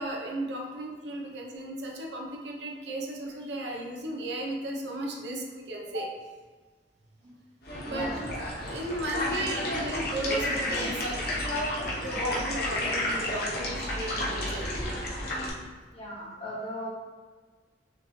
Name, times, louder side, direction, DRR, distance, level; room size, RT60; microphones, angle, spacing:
voice 1, 0.0-6.1 7.8-8.1 8.5-11.2 12.0-14.7, right 1 dB, 75° right, -1 dB, 0.8 m, -35 dB
sound 1, 7.6-15.5, left 1 dB, 55° left, 1.0 m, -31 dB
voice 2, 12.7-13.3 15.9-16.9, equal, 30° left, -6 dB, 1.3 m, -40 dB
6.1 x 3.1 x 2.8 m, 1.4 s
head